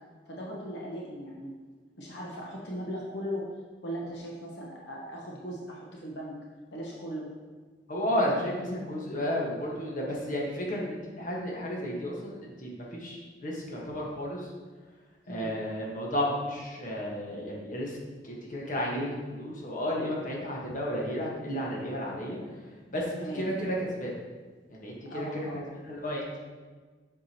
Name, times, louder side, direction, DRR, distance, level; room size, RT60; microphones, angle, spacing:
voice 1, 0.3-1.6 2.0-6.3 6.7-7.3 15.3-15.5 23.2-23.5 25.1-25.7, equal, 80° left, -3 dB, 1.0 m, -38 dB
voice 2, 7.9-14.5 15.3-18.0 18.2-22.4 22.9-24.1 24.7-26.4, equal, 50° left, -3 dB, 1.5 m, -32 dB
7.6 x 6.0 x 2.9 m, 1.4 s
head